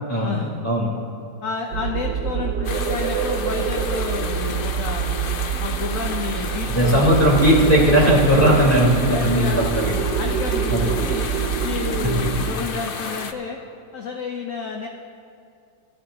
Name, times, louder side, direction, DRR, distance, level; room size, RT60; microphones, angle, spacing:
voice 1, 0.1-0.9 6.7-10.0 10.7-10.9, equal, 10° left, -6 dB, 3.9 m, -18 dB
voice 2, 1.4-5.3 5.6-7.2 8.3-9.6 10.2-11.3 11.6-13.6 13.9-14.9, left 4 dB, 55° left, 2 dB, 1.1 m, -30 dB
sound 1, 1.7-12.5, right 8 dB, 75° right, 1.3 m, -25 dB
sound 2, 2.6-13.3, left 5 dB, 70° left, 0.5 m, -32 dB
21.0 x 14.0 x 2.9 m, 2.4 s
omnidirectional pair, 1.8 m